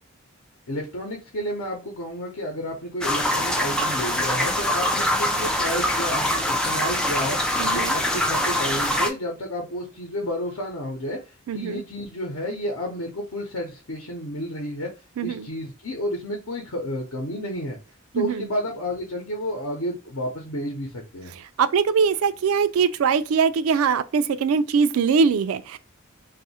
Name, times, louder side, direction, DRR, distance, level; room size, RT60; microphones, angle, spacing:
voice 1, 0.7-7.4 7.7-11.2 11.5-14.9 15.2-17.8 18.1-21.3, equal, 90° left, 0.8 m, -31 dB
sound 1, 3.0-9.1, left 1 dB, 5° left, 0.3 m, -24 dB
voice 2, 7.6-8.0 11.5-11.8 15.2-15.5 18.1-18.5 21.4-25.8, right 6 dB, 85° right, 0.4 m, -22 dB
2.7 x 2.4 x 4.1 m
head